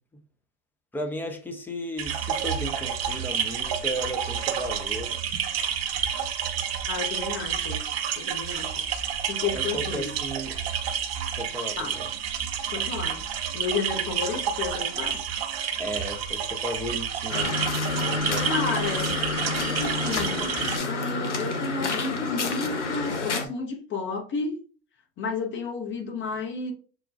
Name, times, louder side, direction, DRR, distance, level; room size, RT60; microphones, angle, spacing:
voice 1, 0.9-5.2 9.5-10.6 11.4-12.1 15.8-17.6 18.0-18.5, equal, 5° left, 0.6 m, -34 dB
sound 1, 2.0-20.8, right 8 dB, 60° right, 0.8 m, -30 dB
voice 2, 6.9-7.8 8.2-8.7 9.0-10.1 11.8-12.0 12.7-13.2 13.5-15.2 18.5-19.2 19.6-20.5 20.9-24.6 25.2-26.7, left 5 dB, 35° left, 0.9 m, -32 dB
sound 2, 17.3-23.5, left 3 dB, 80° left, 0.8 m, -28 dB
6.3 x 2.2 x 2.5 m
figure-of-eight pair, 75°, 35 cm